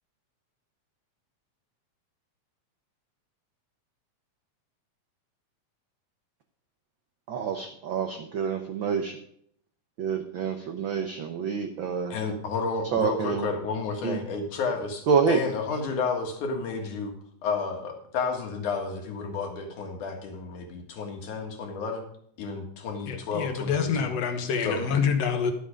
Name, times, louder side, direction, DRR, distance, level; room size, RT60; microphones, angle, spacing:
voice 1, 7.3-9.2 10.0-12.1 12.9-13.5 14.0-14.2 15.1-15.4, right 6 dB, 90° right, 6 dB, 1.0 m, -27 dB
voice 2, 12.1-17.1 17.4-22.0 22.4-24.1 24.6-24.8, left 4 dB, 85° left, 3 dB, 3.2 m, -31 dB
voice 3, 23.1-25.5, left 6 dB, 65° left, 6 dB, 2.3 m, -26 dB
12.0 x 7.7 x 5.1 m, 0.66 s
omnidirectional pair, 3.4 m